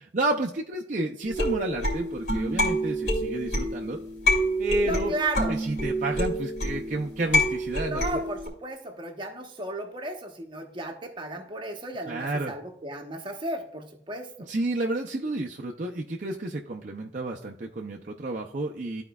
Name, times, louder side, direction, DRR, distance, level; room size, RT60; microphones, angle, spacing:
voice 1, 0.0-4.0 4.6-5.1 5.5-8.2 12.0-12.6 14.5-19.0, right 2 dB, 45° right, 0 dB, 0.5 m, -31 dB
sound 1, 1.2-8.5, equal, 60° left, 2.5 m, -27 dB
voice 2, 4.8-5.6 7.9-14.5, right 2 dB, 25° right, 4 dB, 1.0 m, -34 dB
13.0 x 4.4 x 2.3 m, 0.73 s
head